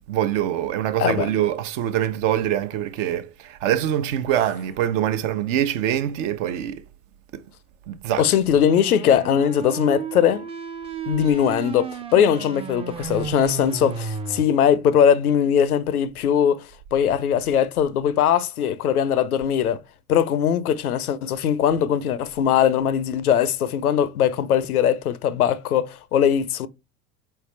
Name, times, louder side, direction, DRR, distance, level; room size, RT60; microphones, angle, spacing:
voice 1, 0.1-6.8 7.9-8.3 13.0-13.1, right 11 dB, 55° right, 0.8 m, -24 dB
voice 2, 8.2-10.5 11.1-19.8 20.1-26.7, left 9 dB, 80° left, 0.6 m, -20 dB
sound 1, 8.5-14.4, right 7 dB, 15° right, 0.4 m, -33 dB
4.5 x 3.3 x 3.1 m
figure-of-eight pair, 70°, 44 cm